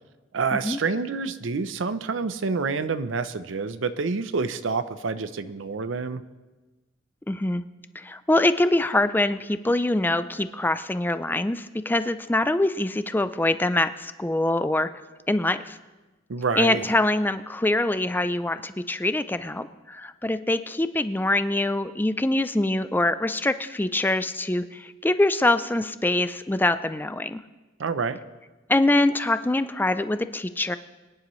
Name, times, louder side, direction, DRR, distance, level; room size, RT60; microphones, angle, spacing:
voice 1, 0.3-6.2 16.3-16.9 27.8-28.2, right 4 dB, 85° right, 11 dB, 0.6 m, -28 dB
voice 2, 7.3-7.6 8.0-14.9 15.3-15.8 16.6-27.4 28.7-30.8, left 2 dB, 10° left, 12 dB, 0.4 m, -24 dB
24.0 x 10.0 x 3.1 m, 1.2 s
head